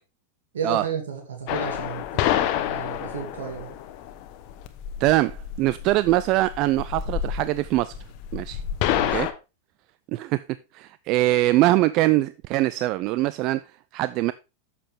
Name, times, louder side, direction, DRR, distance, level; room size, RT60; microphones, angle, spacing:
voice 1, 0.5-3.8 8.9-9.3, right 5 dB, 90° right, 2.3 m, -33 dB
sound 1, 1.5-9.3, left 12 dB, 50° left, 1.0 m, -28 dB
voice 2, 5.0-8.0 8.3-8.6 9.1-9.3 10.1-10.4 10.7-13.6 13.9-14.3, right 17 dB, 45° right, 0.3 m, -22 dB
7.7 x 6.9 x 3.5 m
hypercardioid pair, 120°, 0 cm